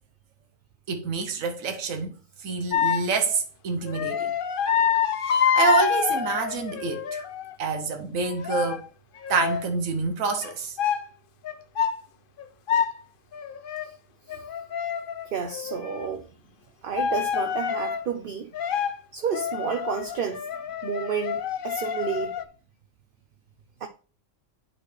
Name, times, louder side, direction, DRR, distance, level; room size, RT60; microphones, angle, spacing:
voice 1, 0.9-4.3 5.2-7.2 7.6-8.8 9.3-10.8, right 5 dB, 85° right, 1.2 m, -27 dB
sound 1, 2.7-3.1 3.9-7.5 8.2-8.9 9.2-9.7 10.4-10.5 10.8-11.0 11.4-12.0 12.4-13.0 13.3-13.9 14.3-16.1 16.9-18.1 18.5-19.0 19.2-22.4, left 8 dB, 60° left, 0.6 m, -27 dB
voice 2, 15.3-16.3 16.8-18.5 19.1-20.4 20.8-22.4 23.8-23.9, right 7 dB, 50° right, 0.8 m, -30 dB
11.0 x 4.4 x 3.1 m
omnidirectional pair, 1.4 m